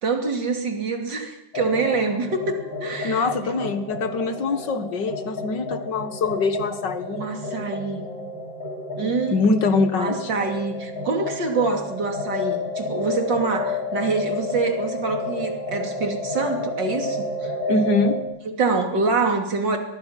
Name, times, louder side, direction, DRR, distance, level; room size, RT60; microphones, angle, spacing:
voice 1, 0.0-3.3 7.1-8.1 9.0-9.4 10.0-17.5 18.5-19.8, right 4 dB, 75° right, 4 dB, 3.5 m, -25 dB
sound 1, 1.5-18.2, left 2 dB, 85° left, 5.3 m, -31 dB
voice 2, 3.0-7.3 9.0-10.3 17.7-18.2, left 3 dB, 70° left, 10 dB, 2.2 m, -23 dB
23.0 x 21.5 x 5.9 m, 0.90 s
omnidirectional pair, 2.0 m